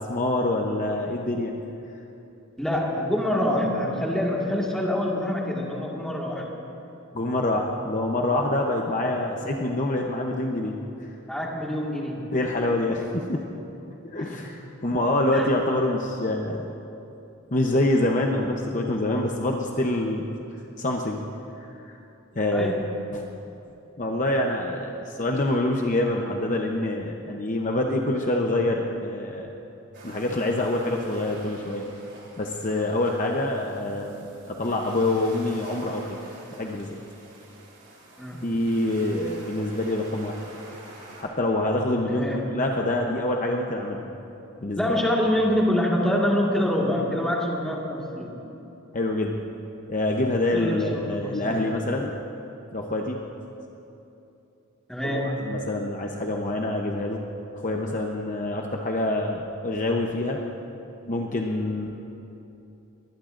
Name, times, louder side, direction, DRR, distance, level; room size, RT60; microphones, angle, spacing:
voice 1, 0.0-1.5 7.1-10.8 12.3-13.4 13.9-16.7 17.5-20.3 20.8-21.2 21.9-22.0 22.3-22.7 23.1-23.2 24.0-29.5 30.0-31.9 32.4-36.2 36.5-37.0 38.4-40.4 41.2-44.0 44.6-44.9 48.9-49.4 49.9-52.1 52.7-53.2 55.0-57.2 57.5-60.4 61.1-61.9, left 1 dB, 35° left, 1 dB, 0.8 m, -26 dB
voice 2, 2.6-6.5 11.3-12.4 14.3-14.5 15.3-15.5 22.5-23.0 38.2-38.5 42.1-42.5 44.7-48.4 50.5-51.7 54.9-55.6, left 1 dB, 5° left, -3 dB, 1.8 m, -26 dB
sound 1, 29.9-41.2, right 2 dB, 55° right, 4.0 m, -47 dB
23.5 x 19.5 x 2.6 m, 2.9 s
head